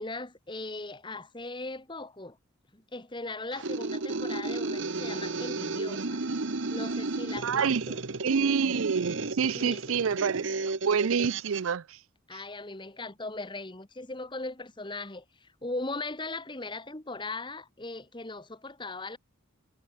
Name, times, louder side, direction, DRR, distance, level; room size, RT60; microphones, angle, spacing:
voice 1, 0.0-2.4 2.7-6.2 6.7-8.0 9.5-9.8 12.3-19.2, left 2 dB, 25° left, 1.6 m, -39 dB
sound 1, 3.5-11.7, right 3 dB, 65° right, 1.2 m, -33 dB
voice 2, 7.4-7.9 8.2-12.0, right 6 dB, 90° right, 0.5 m, -28 dB
head